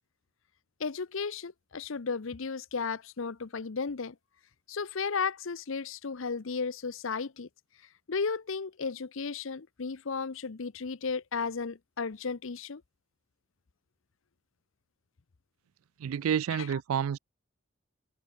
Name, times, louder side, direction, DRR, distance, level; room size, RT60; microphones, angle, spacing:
voice 1, 0.8-4.2 4.7-7.5 8.1-12.8 16.5-16.7, left 5 dB, 65° left, 0.7 m, -34 dB
voice 2, 16.0-17.2, right 8 dB, 80° right, 0.3 m, -29 dB
head